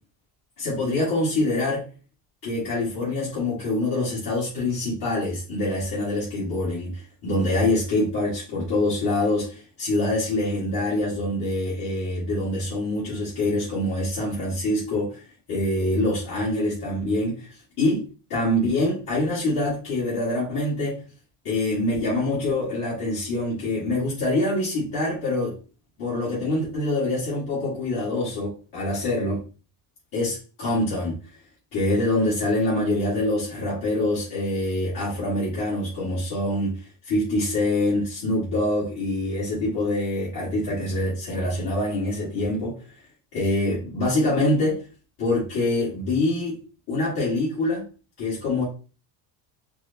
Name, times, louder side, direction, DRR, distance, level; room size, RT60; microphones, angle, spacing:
voice 1, 0.6-1.9 2.4-15.2 15.5-21.0 21.4-25.6 26.0-29.4 30.1-31.2 31.7-42.8 43.3-44.8 45.2-46.6 46.9-47.8 48.2-48.6, left 1 dB, 50° left, 1.7 m, -25 dB
4.6 x 2.1 x 2.7 m
cardioid pair, 130°, 47 cm